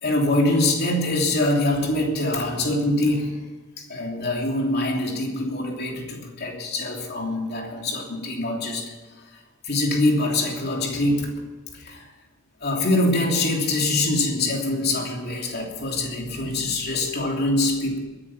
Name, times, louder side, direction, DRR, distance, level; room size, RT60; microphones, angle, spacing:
voice 1, 0.0-3.4 3.8-8.9 9.6-11.3 11.7-12.1 12.6-18.0, left 2 dB, 50° left, 0 dB, 3.0 m, -24 dB
22.0 x 10.0 x 5.8 m, 1.3 s
head